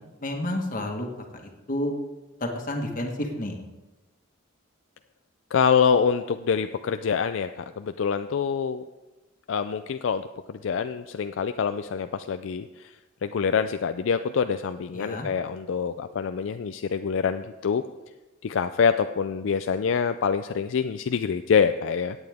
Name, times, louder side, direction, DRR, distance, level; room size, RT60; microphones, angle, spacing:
voice 1, 0.2-1.9 2.4-3.6 14.9-15.3, left 1 dB, 40° left, 2 dB, 1.5 m, -30 dB
voice 2, 5.5-8.8 9.5-12.9 13.2-17.8 18.4-22.2, left 6 dB, 70° left, 9 dB, 0.4 m, -25 dB
17.0 x 8.9 x 3.6 m, 1.1 s
head